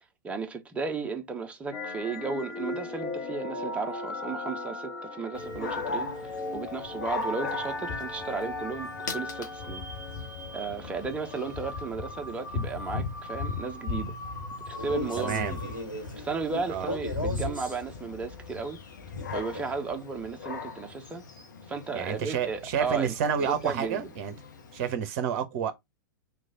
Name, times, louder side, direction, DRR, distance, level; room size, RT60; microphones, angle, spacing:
voice 1, 0.2-9.8 10.5-14.1 14.7-15.8 16.2-18.8 19.3-21.2 21.7-24.0, right 4 dB, 10° right, 0.6 m, -34 dB
sound 1, 1.7-15.8, left 2 dB, 30° left, 1.0 m, -38 dB
Dog, 5.3-24.9, left 4 dB, 60° left, 0.8 m, -39 dB
Male speech man speaking, 14.7-17.8 19.2-19.8, left 1 dB, 85° left, 1.3 m, -37 dB
voice 2, 15.2-15.6 16.7-16.9 21.9-24.3 24.7-25.7, right 7 dB, 45° right, 0.8 m, -29 dB
3.1 x 2.3 x 3.8 m
figure-of-eight pair, 100°, 11 cm